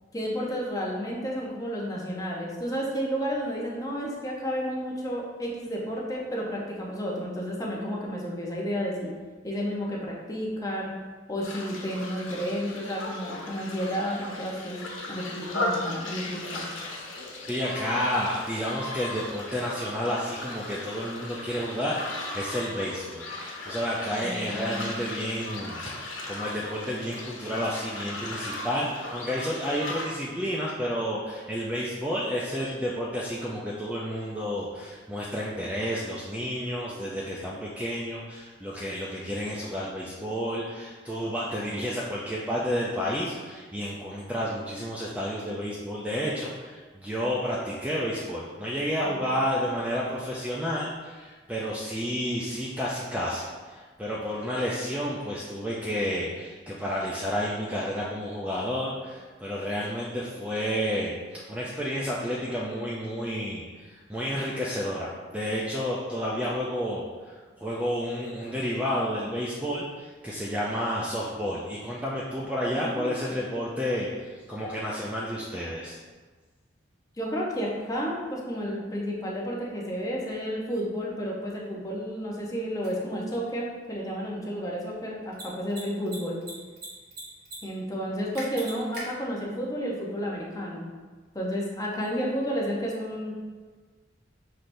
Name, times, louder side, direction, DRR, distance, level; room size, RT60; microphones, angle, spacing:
voice 1, 0.1-9.1 9.4-10.9 11.3-14.8 15.1-16.7 24.2-25.0 49.2-49.3 72.7-73.2 77.2-86.4 87.6-90.9 91.3-93.3, equal, 20° left, -3 dB, 0.7 m, -31 dB
sound 1, 11.4-30.1, left 2 dB, 90° left, 0.9 m, -37 dB
voice 2, 17.5-76.0, equal, 10° right, -5 dB, 0.4 m, -31 dB
Mechanisms, 82.8-82.9 85.2-85.4 85.7-85.8 86.1-86.9 87.1-87.6 87.8-87.9 88.3-89.0, right 2 dB, 55° right, 1.2 m, -39 dB
5.7 x 3.2 x 2.6 m, 1.4 s
head